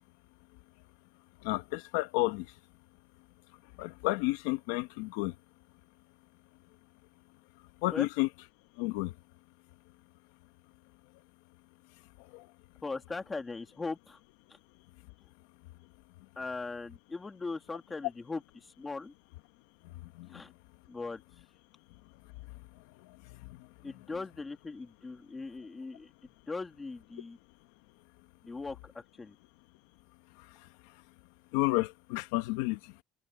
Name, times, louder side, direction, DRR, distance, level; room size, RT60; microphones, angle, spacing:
voice 1, 1.4-2.5 3.8-5.3 7.8-8.3 8.8-9.1 12.3-12.5 20.1-20.4 23.4-23.7 31.5-33.0, left 21 dB, 85° left, 1.2 m, -31 dB
voice 2, 12.8-14.2 16.4-19.1 20.3-20.5 20.9-21.2 23.8-26.1 26.5-27.4 28.4-29.3, left 3 dB, 15° left, 2.3 m, -39 dB
cardioid pair, 160°, 0 cm